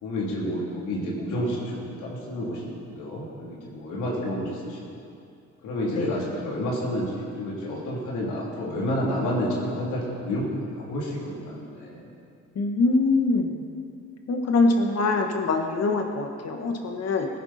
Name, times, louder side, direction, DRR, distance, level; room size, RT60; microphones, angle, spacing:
voice 1, 0.0-5.0 5.6-10.5 10.8-12.1, equal, 85° left, -4 dB, 3.5 m, -30 dB
voice 2, 12.5-13.6 14.3-17.3, left 3 dB, 55° left, 3 dB, 1.7 m, -24 dB
17.5 x 10.5 x 4.4 m, 2.5 s
cardioid pair, 90°, 30 cm